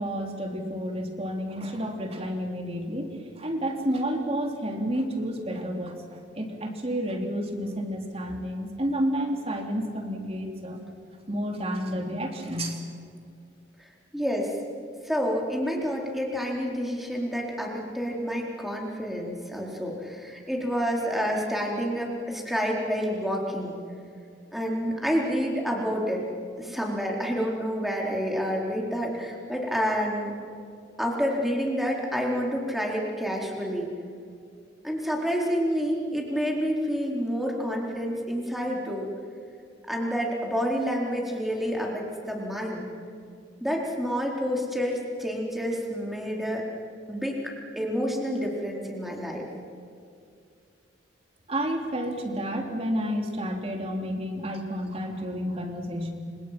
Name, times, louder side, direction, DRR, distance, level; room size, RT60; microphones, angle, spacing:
voice 1, 0.0-10.8 11.3-12.8 51.5-56.1, equal, 35° right, 2 dB, 3.3 m, -30 dB
voice 2, 14.1-14.5 15.0-23.8 24.5-26.2 26.6-30.3 31.0-33.9 34.8-39.1 39.9-42.9 43.6-46.6 47.1-49.5, equal, ahead, -2 dB, 4.4 m, -28 dB
30.0 x 27.0 x 6.1 m, 2.3 s
head